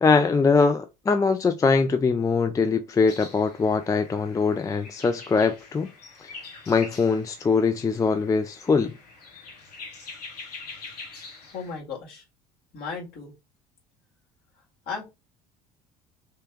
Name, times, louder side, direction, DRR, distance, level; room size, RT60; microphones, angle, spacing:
voice 1, 0.0-5.9 6.2-6.3 6.7-8.9, left 4 dB, 15° left, 0.4 m, -22 dB
sound 1, 3.1-11.8, left 3 dB, 80° left, 1.0 m, -44 dB
voice 2, 11.5-12.2 12.7-13.3 14.9-15.0, left 5 dB, 50° left, 1.7 m, -35 dB
3.3 x 2.8 x 3.5 m
figure-of-eight pair, 60°, 20 cm